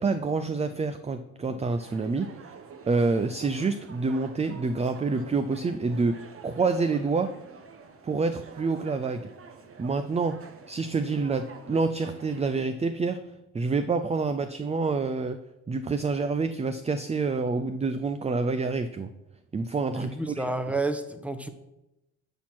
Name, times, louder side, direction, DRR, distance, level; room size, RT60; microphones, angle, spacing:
voice 1, 0.0-2.5 2.9-7.3 8.0-9.3 9.8-10.4 10.7-13.2 13.5-15.4 15.7-19.1 19.5-20.4, right 4 dB, 20° right, 10 dB, 0.5 m, -27 dB
sound 1, 1.7-12.6, right 5 dB, 45° right, 1.2 m, -48 dB
voice 2, 19.9-21.5, right 2 dB, 5° right, 8 dB, 1.0 m, -30 dB
11.5 x 4.5 x 6.1 m, 0.95 s
cardioid pair, 90°, 30 cm